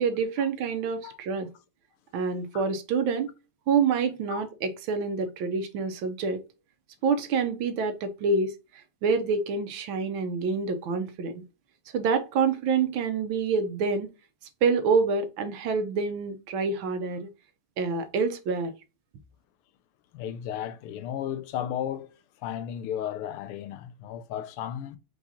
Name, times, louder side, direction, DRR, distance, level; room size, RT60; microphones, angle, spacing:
voice 1, 0.0-1.5 2.1-3.3 3.7-6.4 7.0-11.4 11.9-14.1 14.6-17.3 17.8-18.7, right 5 dB, 70° right, 1.5 m, -27 dB
voice 2, 20.1-25.0, left 10 dB, 90° left, 1.5 m, -34 dB
4.8 x 3.7 x 2.6 m
omnidirectional pair, 2.4 m